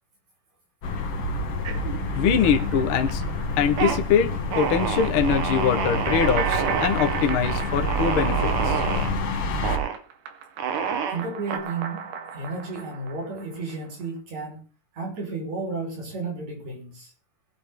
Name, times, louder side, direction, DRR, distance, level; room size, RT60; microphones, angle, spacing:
sound 1, 0.8-9.8, left 1 dB, 50° left, 1.8 m, -28 dB
sound 2, 1.7-2.4 2.7-3.2 3.6-4.0 4.5-9.1 9.6-10.0 10.6-11.6, right 7 dB, 60° right, 2.8 m, -28 dB
voice 1, 2.1-3.2 3.5-8.8, left 7 dB, 90° left, 4 dB, 1.1 m, -23 dB
sound 3, 2.4-4.0 4.3-4.4 6.1-9.5 9.8-14.0, right 6 dB, 80° right, 3.8 m, -37 dB
voice 2, 11.1-14.6 14.9-17.1, right 3 dB, 40° right, 0 dB, 6.6 m, -33 dB
20.0 x 9.3 x 3.9 m, 0.37 s
omnidirectional pair, 4.7 m